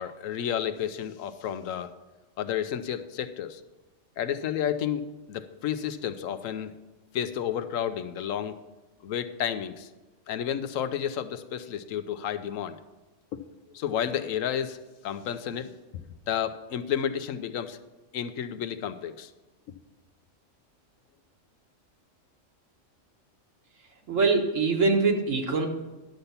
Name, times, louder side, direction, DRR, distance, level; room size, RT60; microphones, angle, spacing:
voice 1, 0.0-1.9 2.4-3.6 4.2-6.7 7.1-8.6 9.0-9.9 10.3-12.8 13.7-14.8 15.0-17.8 18.1-19.3, left 9 dB, 85° left, 10 dB, 1.1 m, -31 dB
voice 2, 24.1-25.7, right 4 dB, 80° right, 3 dB, 1.6 m, -23 dB
10.5 x 6.7 x 5.7 m, 1.1 s
omnidirectional pair, 1.3 m